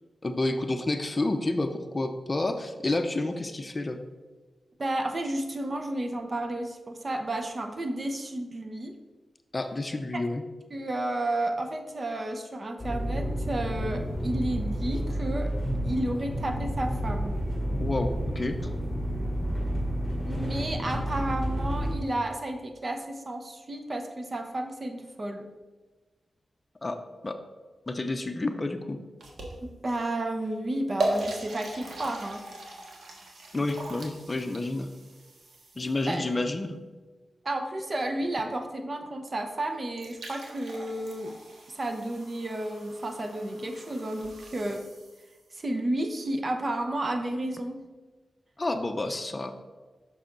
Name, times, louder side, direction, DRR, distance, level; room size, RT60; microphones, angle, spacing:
voice 1, 0.2-4.0 9.5-10.4 17.8-18.6 26.8-27.0 27.2-27.4 27.9-29.0 33.5-34.9 35.8-36.8 48.6-49.5, left 2 dB, 30° left, 7 dB, 0.6 m, -29 dB
voice 2, 4.8-8.9 10.1-10.2 10.7-15.6 15.8-17.3 20.3-25.5 29.6-32.4 36.1-36.2 37.4-41.3 41.7-44.8 45.5-47.8, right 1 dB, 40° right, 6 dB, 0.8 m, -32 dB
sound 1, 12.8-21.9, equal, 10° left, 2.2 m, -30 dB
sound 2, 29.2-29.9 30.5-30.6 31.0-36.3 39.6-39.7 39.9-45.5, right 2 dB, 75° right, 1.4 m, -38 dB
6.2 x 5.8 x 3.8 m, 1.3 s
cardioid pair, 80°, 0 cm